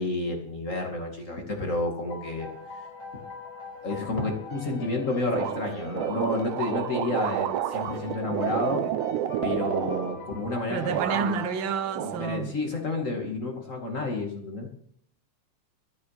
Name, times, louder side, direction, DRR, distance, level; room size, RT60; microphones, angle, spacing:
voice 1, 0.0-2.5 3.8-8.9 9.4-11.3 12.2-14.7, left 2 dB, 30° left, 2.2 m, -30 dB
sound 1, 2.1-12.5, left 4 dB, 65° left, 5.3 m, -43 dB
sound 2, 5.3-10.6 10.9-11.6 11.9-12.8, right 11 dB, 85° right, 2.2 m, -30 dB
voice 2, 10.7-12.5, right 6 dB, 55° right, 1.4 m, -29 dB
13.0 x 11.5 x 5.9 m
omnidirectional pair, 3.4 m